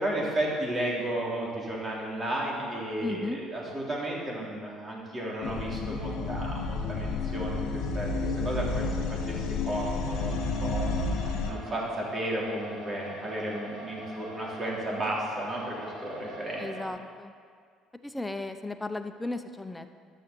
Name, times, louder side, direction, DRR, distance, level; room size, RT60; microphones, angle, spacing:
voice 1, 0.0-7.7 7.9-8.8 9.2-10.9 11.5-16.9, right 1 dB, 25° right, -4 dB, 3.2 m, -33 dB
voice 2, 3.0-3.4 16.6-17.3 18.0-19.9, left 2 dB, 10° left, 8 dB, 0.7 m, -35 dB
sound 1, 5.4-11.5, left 3 dB, 70° left, 1.7 m, -31 dB
sound 2, 10.1-16.9, right 1 dB, 85° right, 2.4 m, -43 dB
12.0 x 6.4 x 7.0 m, 2.1 s
supercardioid pair, 100°, 0 cm